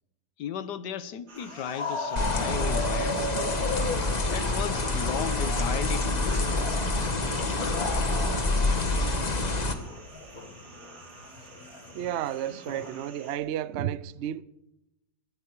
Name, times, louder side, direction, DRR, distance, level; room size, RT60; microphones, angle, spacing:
voice 1, 0.4-3.7 4.3-6.3, left 9 dB, 70° left, 1.4 m, -35 dB
sound 1, 1.3-8.8 9.0-12.9, left 2 dB, 55° left, 2.3 m, -36 dB
sound 2, 1.3-13.4, right 3 dB, 60° right, 3.1 m, -50 dB
sound 3, 2.2-9.7, left 2 dB, 25° left, 1.2 m, -27 dB
voice 2, 11.9-14.4, right 11 dB, 85° right, 0.6 m, -32 dB
18.0 x 12.5 x 4.7 m
omnidirectional pair, 2.0 m